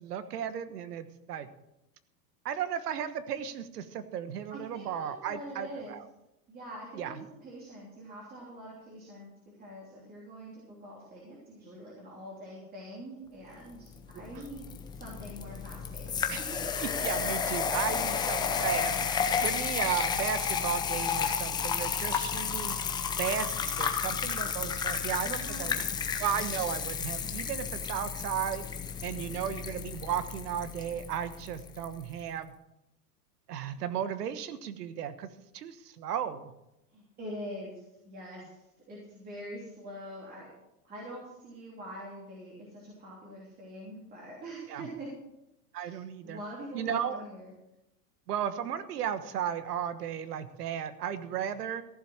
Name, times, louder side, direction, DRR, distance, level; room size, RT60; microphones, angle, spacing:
voice 1, 0.0-1.5 2.4-6.0 6.9-7.2 14.3-14.4 16.3-16.4 16.8-19.0 19.4-22.8 23.1-25.8 26.2-28.7 29.0-32.5 33.5-35.3 35.5-36.5 44.7-44.9 45.7-46.4 46.7-47.2 48.3-51.8, right 9 dB, 80° right, 12 dB, 1.4 m, -35 dB
voice 2, 4.5-5.9 6.5-9.3 9.6-14.6 14.9-16.5 25.2-26.0 36.9-40.5 40.8-45.1 45.7-47.5, right 1 dB, 20° right, -5 dB, 3.2 m, -44 dB
sound 1, 13.9-31.9, left 6 dB, 10° left, 0.5 m, -32 dB
14.5 x 7.4 x 6.4 m, 0.87 s
supercardioid pair, 145°, 46 cm